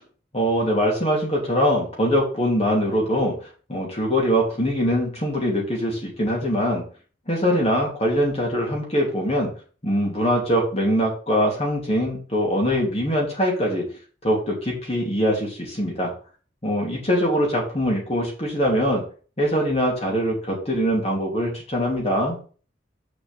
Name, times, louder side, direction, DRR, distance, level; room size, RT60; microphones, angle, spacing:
voice 1, 0.3-3.3 3.7-6.8 7.3-9.5 9.8-13.9 14.2-16.1 16.6-19.0 19.4-22.4, equal, 35° left, -2 dB, 3.0 m, -22 dB
6.9 x 4.9 x 6.8 m, 0.40 s
head